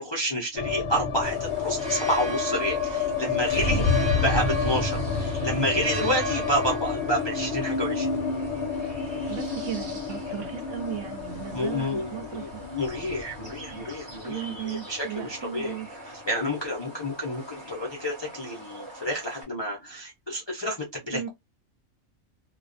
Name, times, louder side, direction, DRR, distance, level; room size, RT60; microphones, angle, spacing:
voice 1, 0.0-3.8 4.2-8.2 11.5-14.4 14.6-15.8 16.0-20.8 21.1-21.3, equal, 45° left, 0.3 m, -29 dB
sound 1, 0.5-16.7 16.9-17.0 17.3-18.0, left 5 dB, 65° left, 0.7 m, -30 dB
sound 2, 1.2-19.4, right 1 dB, 30° right, 0.5 m, -39 dB
voice 2, 3.7-4.2 6.0-6.4 9.3-12.6 13.4-13.8 14.2-15.9 21.1-21.3, right 10 dB, 70° right, 0.9 m, -36 dB
2.3 x 2.2 x 2.5 m
omnidirectional pair, 1.4 m